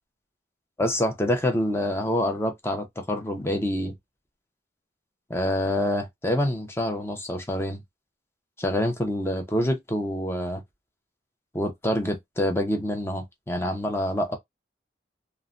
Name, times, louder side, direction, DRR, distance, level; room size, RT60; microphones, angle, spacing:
voice 1, 0.8-3.9 5.3-7.8 8.6-10.6 11.5-14.4, left 1 dB, 15° left, 0.6 m, -26 dB
3.0 x 2.2 x 2.5 m
head